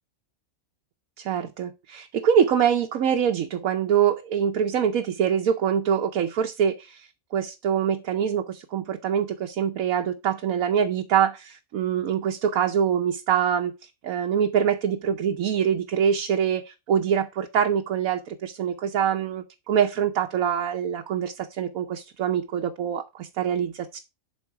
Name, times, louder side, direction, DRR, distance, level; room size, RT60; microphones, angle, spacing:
voice 1, 1.2-24.0, right 8 dB, 85° right, 1.2 m, -24 dB
11.5 x 4.1 x 4.7 m
omnidirectional pair, 1.4 m